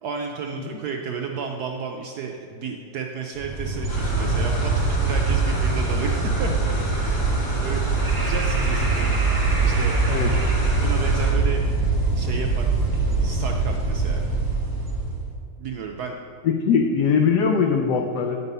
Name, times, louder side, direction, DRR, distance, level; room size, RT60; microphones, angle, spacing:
voice 1, 0.0-6.5 6.9-9.2 9.6-10.0 10.3-10.4 10.8-11.6 12.2-12.7 13.2-14.2 15.6-16.2, right 6 dB, 75° right, 2 dB, 0.9 m, -32 dB
sound 1, 3.4-15.3, right 3 dB, 20° right, 0.6 m, -23 dB
sound 2, 3.9-11.3, left 1 dB, 55° left, 2.5 m, -33 dB
voice 2, 16.4-18.4, left 6 dB, 70° left, 3 dB, 1.0 m, -21 dB
9.8 x 5.4 x 5.4 m, 2.3 s
omnidirectional pair, 2.2 m